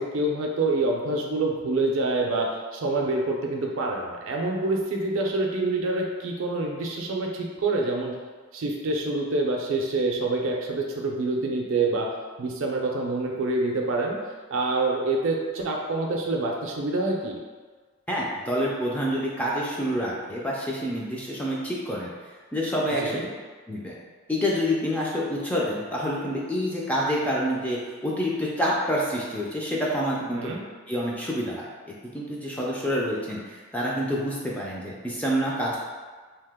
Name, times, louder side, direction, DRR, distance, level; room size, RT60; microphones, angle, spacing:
voice 1, 0.0-8.1 8.5-12.1 12.4-14.2 14.5-17.4 23.0-23.3 30.3-30.6, right 2 dB, 65° right, 0 dB, 0.4 m, -26 dB
voice 2, 18.1-22.1 22.5-23.3 23.7-24.0 24.3-30.6 30.9-35.8, equal, 5° left, -5 dB, 0.3 m, -27 dB
2.8 x 2.1 x 3.4 m, 1.5 s
head